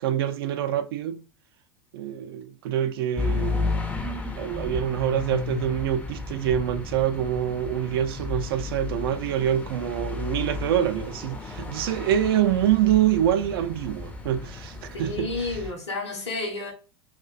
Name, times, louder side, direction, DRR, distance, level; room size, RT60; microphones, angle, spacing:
voice 1, 0.0-1.2 1.9-3.8 4.4-15.6, right 11 dB, 55° right, 0.4 m, -25 dB
sound 1, 3.2-15.7, left 4 dB, 10° left, 0.4 m, -33 dB
voice 2, 14.9-16.7, left 2 dB, 75° left, 0.7 m, -31 dB
2.5 x 2.1 x 2.3 m
figure-of-eight pair, 85°, 14 cm